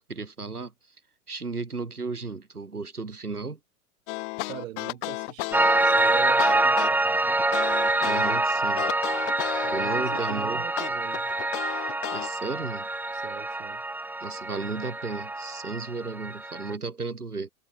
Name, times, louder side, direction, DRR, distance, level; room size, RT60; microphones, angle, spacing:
voice 1, 0.1-0.7 1.3-3.6 8.0-8.9 9.7-10.6 12.1-12.9 14.2-17.5, right 4 dB, 85° right, 4.2 m, -34 dB
sound 1, 4.1-8.4 8.8-10.4 10.8-12.3, left 30 dB, 50° left, 3.6 m, -34 dB
voice 2, 4.4-7.4 9.6-11.3 13.1-13.8, right 13 dB, 60° right, 3.9 m, -41 dB
Piano, 5.5-16.8, right 2 dB, 5° right, 1.1 m, -26 dB
figure-of-eight pair, 90°, 44 cm